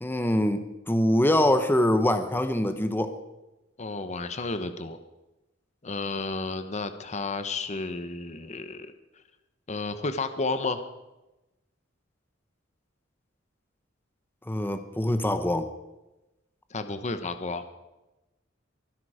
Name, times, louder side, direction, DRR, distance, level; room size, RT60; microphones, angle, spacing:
voice 1, 0.0-3.1 14.5-15.7, left 1 dB, 10° left, 9 dB, 0.9 m, -24 dB
voice 2, 3.8-5.0 5.8-8.9 9.7-10.8 16.7-17.6, left 3 dB, 35° left, 10 dB, 1.0 m, -32 dB
23.5 x 11.0 x 5.0 m, 1.0 s
head